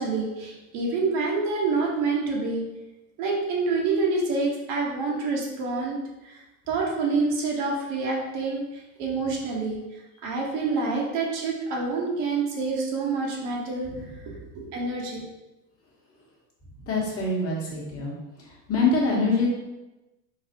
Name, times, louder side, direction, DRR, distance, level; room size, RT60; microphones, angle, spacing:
voice 1, 0.0-2.6 3.2-6.0 6.2-6.4 6.7-9.8 10.2-13.9 14.3-15.2, right 3 dB, 55° right, -2 dB, 1.1 m, -27 dB
voice 2, 16.9-18.1 18.7-19.5, left 3 dB, 30° left, -4 dB, 1.1 m, -24 dB
4.0 x 2.7 x 2.8 m, 1.0 s
supercardioid pair, 115°, 46 cm